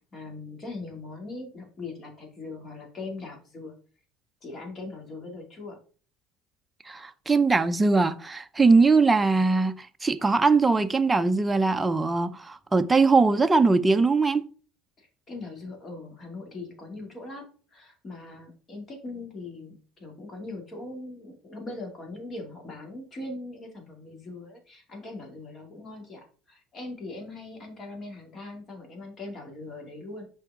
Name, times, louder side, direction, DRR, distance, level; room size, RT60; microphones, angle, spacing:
voice 1, 0.1-3.7 4.4-5.8 15.0-30.3, left 2 dB, 35° left, 2.4 m, -40 dB
voice 2, 6.9-14.5, right 4 dB, 15° right, 0.5 m, -21 dB
6.2 x 4.6 x 3.6 m
supercardioid pair, 110°, 0 cm